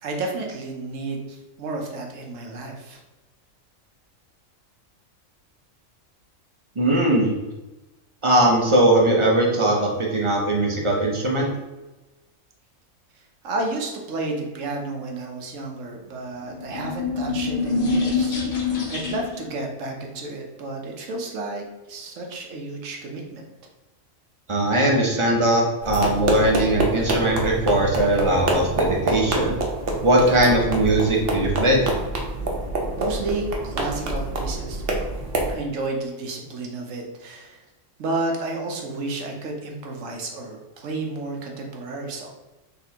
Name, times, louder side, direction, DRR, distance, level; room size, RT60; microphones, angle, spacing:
voice 1, 0.0-3.0 13.4-18.4 18.9-23.4 33.0-34.8 35.5-37.6 38.0-42.3, right 2 dB, 70° right, 1 dB, 1.1 m, -31 dB
voice 2, 6.8-7.3 8.2-11.5 24.5-29.5 30.0-31.9, right 1 dB, 35° right, -1 dB, 0.5 m, -20 dB
sound 1, 16.5-19.5, left 4 dB, 45° left, 0.8 m, -25 dB
sound 2, 25.8-35.5, right 2 dB, 55° right, 0.9 m, -26 dB
4.1 x 3.4 x 2.8 m, 1.1 s
omnidirectional pair, 1.4 m